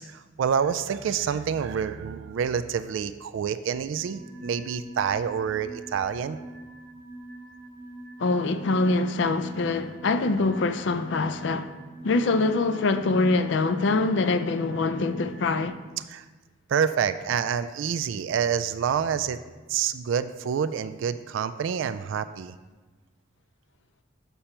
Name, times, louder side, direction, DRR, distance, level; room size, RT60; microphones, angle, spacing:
voice 1, 0.1-6.4 16.1-16.2 16.7-19.4 19.7-22.5, right 7 dB, 75° right, 0.3 m, -27 dB
sound 1, 4.0-15.7, right 2 dB, 45° right, 0.9 m, -44 dB
voice 2, 8.2-11.8 12.0-15.8, left 3 dB, 65° left, 0.4 m, -24 dB
6.9 x 5.7 x 4.3 m
head